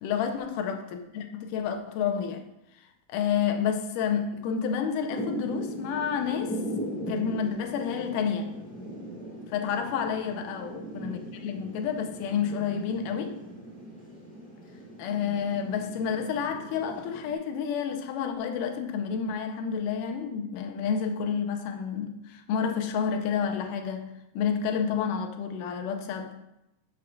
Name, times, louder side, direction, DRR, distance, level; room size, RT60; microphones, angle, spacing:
voice 1, 0.0-2.4 3.1-6.6 7.1-8.5 9.5-13.4 15.0-26.4, left 7 dB, 85° left, 5 dB, 2.3 m, -30 dB
Thunder / Rain, 5.1-17.3, right 1 dB, 5° left, 0.8 m, -39 dB
12.0 x 6.4 x 2.4 m, 0.87 s
omnidirectional pair, 3.7 m